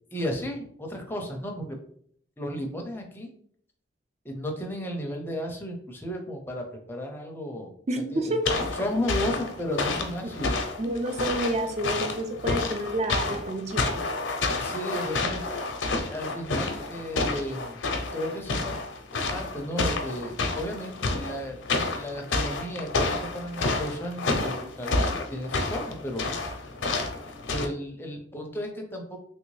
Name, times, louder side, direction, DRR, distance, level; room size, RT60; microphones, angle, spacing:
voice 1, 0.1-1.8 2.4-3.3 4.2-7.7 8.1-8.4 8.7-10.6 14.5-15.4 16.1-17.8 18.1-18.8 19.3-21.6 21.9-26.7 27.5-29.2, equal, 10° left, 2 dB, 0.5 m, -34 dB
voice 2, 7.9-8.4 10.8-14.1, right 1 dB, 35° right, 6 dB, 0.4 m, -29 dB
sound 1, 8.5-27.7, left 3 dB, 90° left, 0.6 m, -30 dB
3.2 x 2.6 x 3.1 m, 0.62 s
head